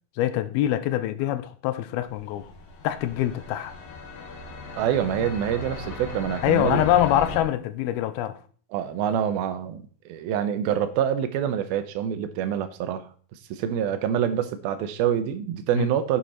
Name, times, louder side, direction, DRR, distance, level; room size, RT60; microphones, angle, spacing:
voice 1, 0.2-2.5 2.8-3.7 6.4-8.4 15.8-15.9, left 12 dB, 90° left, 2.6 m, -24 dB
sound 1, 2.0-7.4, left 3 dB, 65° left, 3.5 m, -37 dB
voice 2, 4.8-6.9 8.7-13.1 13.5-16.2, right 9 dB, 75° right, 2.7 m, -26 dB
9.3 x 8.8 x 4.3 m
omnidirectional pair, 4.4 m